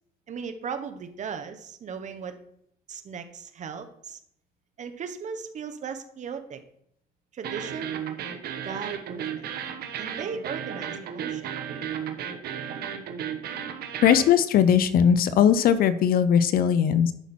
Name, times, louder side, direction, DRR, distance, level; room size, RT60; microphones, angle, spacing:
voice 1, 0.3-2.4 2.9-4.2 4.8-6.6 7.3-8.0 8.6-9.4 10.0-11.5, right 6 dB, 45° right, 8 dB, 1.2 m, -37 dB
sound 1, 7.4-14.3, right 8 dB, 70° right, 1.2 m, -34 dB
voice 2, 14.0-17.1, left 8 dB, 60° left, 14 dB, 0.6 m, -19 dB
11.5 x 5.8 x 4.4 m, 0.71 s
cardioid pair, 110°, 17 cm